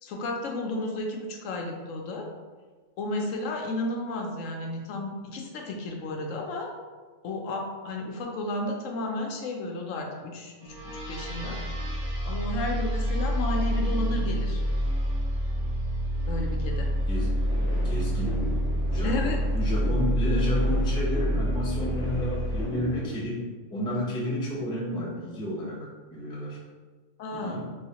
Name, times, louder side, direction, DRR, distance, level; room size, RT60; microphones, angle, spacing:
voice 1, 0.0-2.3 3.0-6.7 7.2-14.6 16.3-16.9 19.0-19.4 27.2-27.6, left 2 dB, 75° left, 1 dB, 0.9 m, -33 dB
sound 1, 10.6-22.6, equal, 35° right, 0.9 m, -27 dB
sound 2, 17.2-23.2, left 1 dB, 50° left, 0.9 m, -38 dB
voice 2, 17.8-18.4 18.7-19.2 19.5-23.4 23.7-26.6 27.3-27.7, equal, 5° left, -6 dB, 0.4 m, -31 dB
3.1 x 3.1 x 2.8 m, 1.4 s
omnidirectional pair, 1.3 m